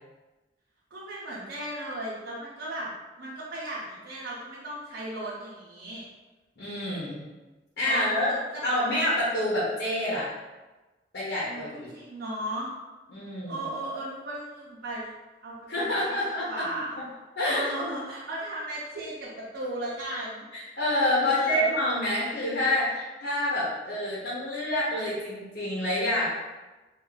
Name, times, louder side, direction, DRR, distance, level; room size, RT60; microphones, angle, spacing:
voice 1, 0.9-2.9 3.2-6.1 7.9-8.6 11.4-11.6 11.9-12.7 13.5-15.1 15.4-17.0 17.5-20.5 21.2-21.7, right 1 dB, 85° right, -8 dB, 0.8 m, -36 dB
voice 2, 6.6-7.2 7.8-8.3 8.6-10.3 11.1-11.9 13.1-13.6 15.7-16.7 17.4-17.9 20.5-26.3, left 1 dB, 75° left, -7 dB, 1.1 m, -27 dB
3.1 x 2.7 x 3.9 m, 1.2 s
head